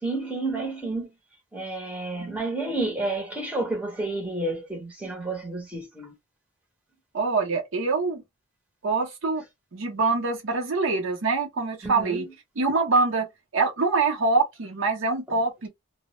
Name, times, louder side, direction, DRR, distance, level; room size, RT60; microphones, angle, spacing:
voice 1, 0.0-1.1 1.5-6.1 11.8-12.3 15.3-15.4, right 2 dB, 5° right, 0.7 m, -30 dB
voice 2, 7.1-8.2 8.8-9.4 9.7-12.3 12.6-13.3 13.5-15.7, right 3 dB, 70° right, 0.7 m, -24 dB
2.2 x 2.0 x 2.9 m
head